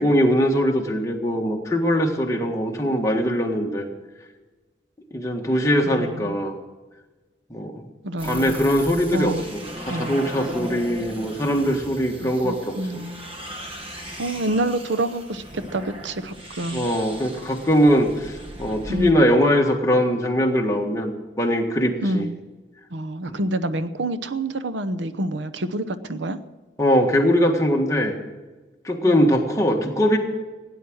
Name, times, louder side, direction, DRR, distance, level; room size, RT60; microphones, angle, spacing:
voice 1, 0.0-3.9 5.1-6.5 7.5-7.9 8.2-13.0 16.7-22.3 23.3-23.4 26.8-28.1 28.8-30.2, equal, 15° left, 1 dB, 1.6 m, -21 dB
voice 2, 5.9-6.4 8.0-8.6 9.1-9.4 9.9-10.2 12.2-13.3 14.2-16.9 18.9-19.2 22.0-22.4 22.9-26.4 29.1-29.3, right 1 dB, 85° right, 11 dB, 0.8 m, -27 dB
sound 1, 8.2-19.1, equal, 30° right, 1.4 m, -37 dB
16.5 x 10.0 x 6.3 m, 1.2 s
head